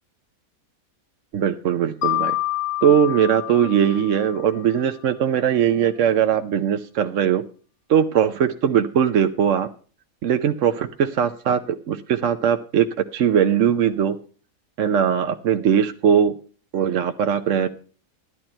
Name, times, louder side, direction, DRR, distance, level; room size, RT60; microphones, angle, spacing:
voice 1, 1.3-2.4 2.8-7.4 7.9-9.7 10.2-12.9 13.1-14.2 14.8-16.3 16.7-17.7, right 8 dB, 65° right, 7 dB, 1.1 m, -20 dB
Mallet percussion, 2.0-4.8, left 15 dB, 40° left, 1.2 m, -28 dB
13.5 x 11.5 x 4.4 m, 0.39 s
omnidirectional pair, 1.5 m